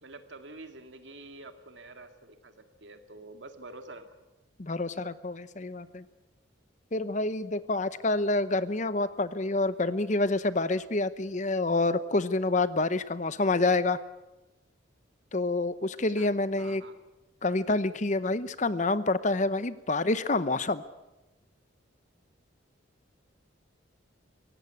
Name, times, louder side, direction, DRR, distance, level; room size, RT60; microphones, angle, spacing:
voice 1, 0.0-4.1 16.2-16.3 16.5-17.0, right 2 dB, 70° right, 7 dB, 2.1 m, -47 dB
voice 2, 4.6-6.0 6.9-14.0 15.3-16.8 17.4-20.8, left 2 dB, 40° left, 14 dB, 0.8 m, -27 dB
23.5 x 17.5 x 8.4 m, 1.0 s
head